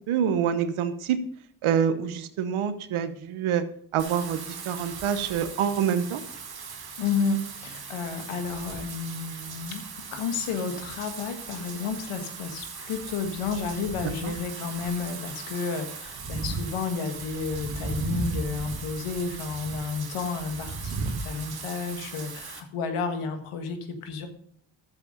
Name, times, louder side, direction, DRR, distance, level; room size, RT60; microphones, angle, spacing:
voice 1, 0.1-1.2 1.6-3.6 3.9-6.2 14.2-14.3, right 8 dB, 75° right, 12 dB, 1.0 m, -26 dB
Wind / Rain, 4.0-22.6, right 4 dB, 50° right, 2.0 m, -37 dB
voice 2, 7.0-9.8 10.1-24.3, left 5 dB, 80° left, 7 dB, 1.6 m, -31 dB
11.5 x 7.4 x 5.4 m, 0.65 s
supercardioid pair, 45°, 49 cm